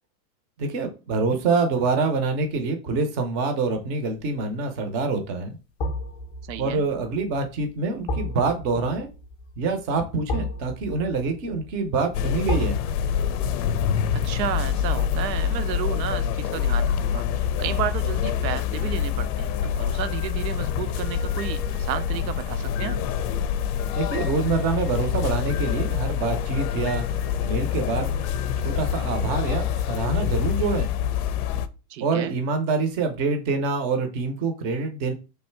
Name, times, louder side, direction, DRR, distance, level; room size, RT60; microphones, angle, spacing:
voice 1, 0.6-5.6 6.6-9.1 9.6-12.8 23.9-27.0 27.4-28.2 28.6-30.9 32.0-35.1, right 4 dB, 35° right, 0.7 m, -26 dB
sound 1, 4.0-4.4 5.8-16.8 17.1-17.3, left 1 dB, 10° left, 0.4 m, -35 dB
voice 2, 6.4-6.9 14.1-23.0 31.9-32.4, right 10 dB, 85° right, 0.6 m, -32 dB
sound 2, 12.1-31.7, left 8 dB, 65° left, 0.5 m, -26 dB
sound 3, 18.8-30.9, left 4 dB, 30° left, 0.7 m, -43 dB
3.3 x 2.6 x 4.5 m
supercardioid pair, 145°, 49 cm